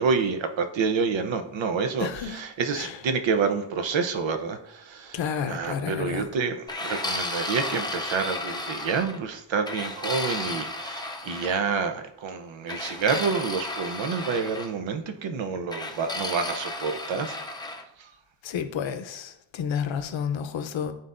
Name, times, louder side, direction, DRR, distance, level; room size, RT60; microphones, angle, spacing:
voice 1, 0.0-5.2 5.4-17.4 18.0-18.1, right 5 dB, 70° right, 0.8 m, -28 dB
voice 2, 2.0-2.4 2.7-2.9 5.1-6.3 18.4-20.9, left 7 dB, 70° left, 0.7 m, -30 dB
sound 1, 6.7-9.2 9.7-11.6 12.7-14.7 15.7-17.8, left 2 dB, 10° left, 0.4 m, -33 dB
11.5 x 4.0 x 2.5 m
wide cardioid pair, 165°, 47 cm